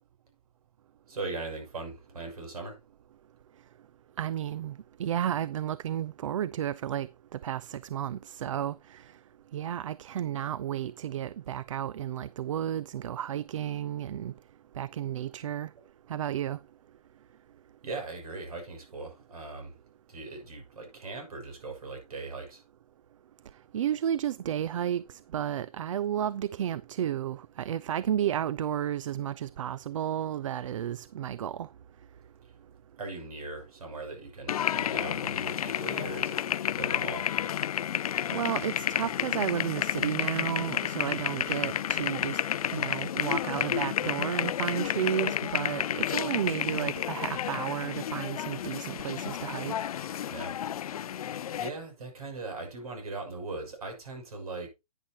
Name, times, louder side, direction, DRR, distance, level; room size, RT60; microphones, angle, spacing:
voice 1, 1.1-2.8 17.8-19.7 20.1-22.6 32.4-32.5 33.0-36.4 36.7-37.3 50.3-50.5 51.6-54.7, right 3 dB, 70° right, 6.7 m, -39 dB
voice 2, 4.2-4.7 5.0-9.0 9.5-14.3 14.8-15.7 16.1-16.6 23.7-31.7 38.3-42.4 42.7-49.7, right 10 dB, 55° right, 0.5 m, -32 dB
sound 1, 34.5-51.7, left 10 dB, 70° left, 0.4 m, -31 dB
10.5 x 9.9 x 2.9 m
hypercardioid pair, 150°, 19 cm